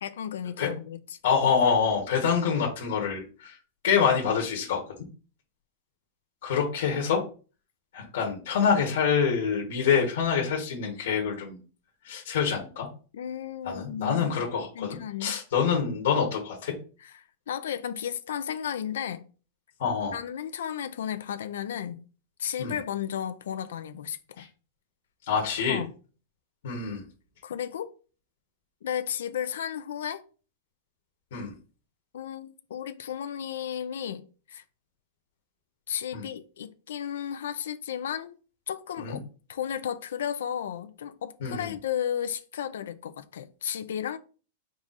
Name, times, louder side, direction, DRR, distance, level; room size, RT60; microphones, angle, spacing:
voice 1, 0.0-1.2 13.1-14.4 14.7-15.4 17.0-17.1 17.5-19.3 20.1-22.0 22.4-24.5 25.7-25.9 27.4-27.9 28.8-30.2 32.1-34.6 35.9-38.3 38.7-39.2 39.5-44.2, left 9 dB, 75° left, 0.4 m, -34 dB
voice 2, 1.2-3.6 3.8-4.8 6.4-7.2 7.9-11.6 12.0-12.9 13.6-16.7 19.8-20.2 22.6-22.7 24.4-24.5 25.3-25.8 26.6-27.0 31.3-31.5 36.1-36.2 39.0-39.2 41.4-41.7, left 6 dB, 55° left, 1.1 m, -26 dB
4.7 x 2.5 x 3.9 m
supercardioid pair, 180°, 0 cm